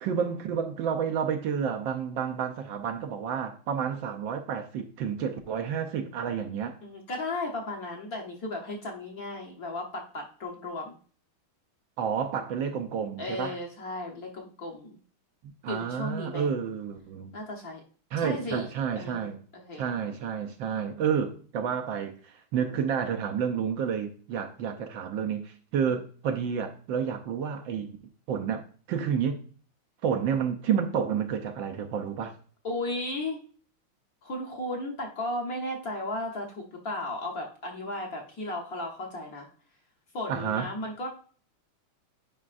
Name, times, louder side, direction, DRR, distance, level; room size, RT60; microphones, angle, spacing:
voice 1, 0.0-6.8 12.0-13.6 15.6-17.4 18.1-19.4 19.8-28.0 28.3-28.6 28.9-29.4 30.0-32.4 40.3-40.7, right 7 dB, 70° right, 1.3 m, -30 dB
voice 2, 6.8-11.0 13.2-15.0 15.7-16.5 17.3-17.8 18.2-18.7 19.0-19.9 25.9-26.0 32.6-33.4 34.2-39.5 40.1-41.1, left 2 dB, 50° left, 1.4 m, -35 dB
9.6 x 5.0 x 2.5 m
omnidirectional pair, 2.4 m